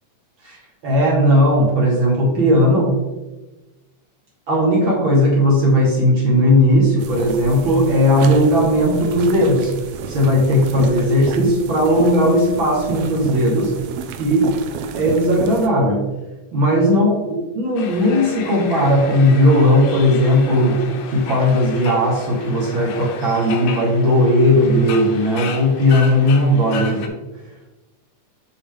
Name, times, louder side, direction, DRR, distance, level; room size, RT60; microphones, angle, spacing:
voice 1, 0.4-2.9 4.5-9.7 10.1-13.7 14.2-14.5 14.9-16.0 16.5-27.2, equal, 60° right, -3 dB, 1.4 m, -16 dB
sound 1, 7.0-15.7, right 6 dB, 80° right, 1.6 m, -32 dB
sound 2, 17.8-27.1, left 5 dB, 85° left, 2.4 m, -33 dB
6.9 x 4.9 x 3.6 m, 1.1 s
omnidirectional pair, 3.7 m